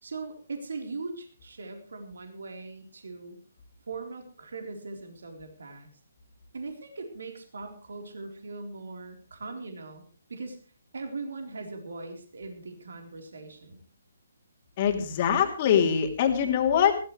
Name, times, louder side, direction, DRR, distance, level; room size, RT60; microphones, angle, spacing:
voice 1, 0.0-3.4 3.9-5.9 6.5-10.0 10.3-10.6 10.9-13.8, right 3 dB, 60° right, 4 dB, 3.9 m, -40 dB
voice 2, 14.8-17.0, left 8 dB, 35° left, 3 dB, 3.0 m, -23 dB
21.0 x 17.0 x 3.3 m, 0.39 s
figure-of-eight pair, 135°, 0 cm